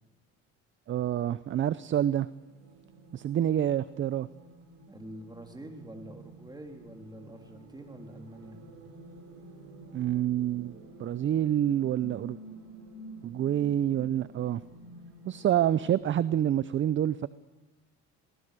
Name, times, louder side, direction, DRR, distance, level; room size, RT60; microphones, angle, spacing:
voice 1, 0.9-2.3 3.1-4.3 9.9-12.4 13.2-14.6 15.3-17.3, right 11 dB, 40° right, 17 dB, 0.6 m, -27 dB
sound 1, 2.2-16.0, right 1 dB, 65° right, 7.6 m, -50 dB
voice 2, 4.9-8.6, right 1 dB, 15° right, 3 dB, 3.5 m, -46 dB
23.5 x 18.0 x 6.8 m, 1.2 s
supercardioid pair, 95°, 31 cm